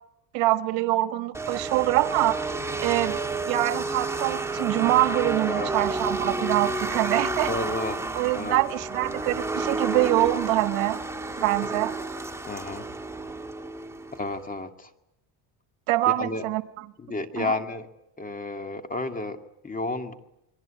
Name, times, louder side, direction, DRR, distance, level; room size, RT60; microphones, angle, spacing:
voice 1, 0.3-2.4 2.8-3.2 3.5-7.5 8.1-11.0 11.4-11.9 15.9-16.8 17.4-17.6, right 17 dB, 80° right, 1.8 m, -24 dB
sound 1, 1.3-14.4, right 3 dB, 5° right, 1.9 m, -30 dB
voice 2, 7.5-8.0 8.3-8.6 12.5-12.9 14.1-14.9 16.2-16.4 17.0-17.9 18.2-20.1, left 2 dB, 15° left, 2.3 m, -31 dB
29.5 x 22.5 x 8.7 m
cardioid pair, 135°, 47 cm